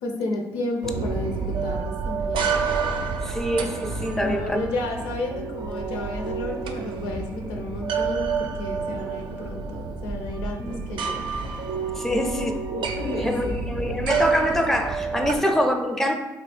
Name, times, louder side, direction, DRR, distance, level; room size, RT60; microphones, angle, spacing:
voice 1, 0.0-2.6 4.2-11.2 12.1-12.5 13.0-13.6 15.3-15.5, left 2 dB, 85° left, 2 dB, 0.5 m, -32 dB
sound 1, 0.8-15.4, right 5 dB, 65° right, 0.4 m, -29 dB
voice 2, 3.2-4.6 10.6-10.8 12.0-16.2, equal, 5° left, 4 dB, 0.4 m, -25 dB
3.1 x 2.3 x 3.2 m, 1.1 s
hypercardioid pair, 50°, 9 cm